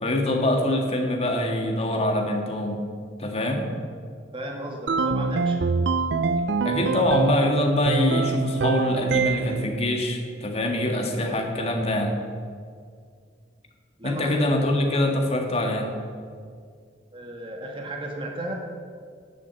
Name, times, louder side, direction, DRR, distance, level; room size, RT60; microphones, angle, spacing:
voice 1, 0.0-2.8 3.2-3.7 6.6-12.1 14.0-15.9, left 1 dB, 30° left, 2 dB, 1.7 m, -24 dB
voice 2, 4.3-5.6 14.0-14.4 17.1-18.5, right 1 dB, 25° right, 1 dB, 1.6 m, -34 dB
sound 1, 4.9-7.5 7.9-9.7, right 4 dB, 65° right, 0.5 m, -24 dB
12.0 x 7.6 x 8.0 m, 2.1 s
head